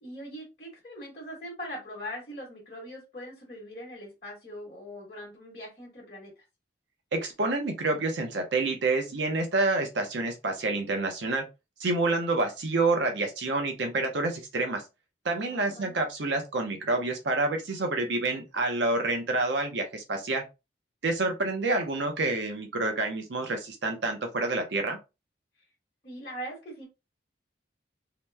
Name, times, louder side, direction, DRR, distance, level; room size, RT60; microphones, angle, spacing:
voice 1, 0.0-6.4 15.4-16.0 21.4-21.5 26.0-26.9, equal, 35° left, -4 dB, 1.2 m, -41 dB
voice 2, 7.1-11.5 11.8-14.8 15.2-20.4 21.0-25.0, right 2 dB, 75° right, 4 dB, 0.7 m, -28 dB
2.8 x 2.1 x 3.3 m, 0.26 s
head